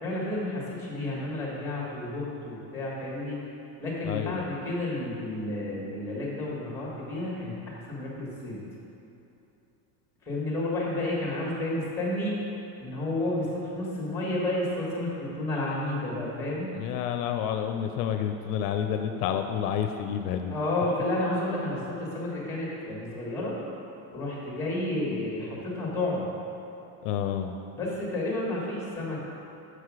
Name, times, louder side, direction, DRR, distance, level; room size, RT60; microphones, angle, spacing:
voice 1, 0.0-3.4 3.8-8.6 10.2-12.4 12.8-16.8 20.5-23.5 24.1-26.3 27.7-29.2, left 1 dB, 5° left, -4 dB, 1.4 m, -31 dB
voice 2, 4.0-4.5 16.7-20.5 27.0-27.6, left 9 dB, 75° left, 6 dB, 0.6 m, -29 dB
6.2 x 4.9 x 6.1 m, 3.0 s
cardioid pair, 175°, 48 cm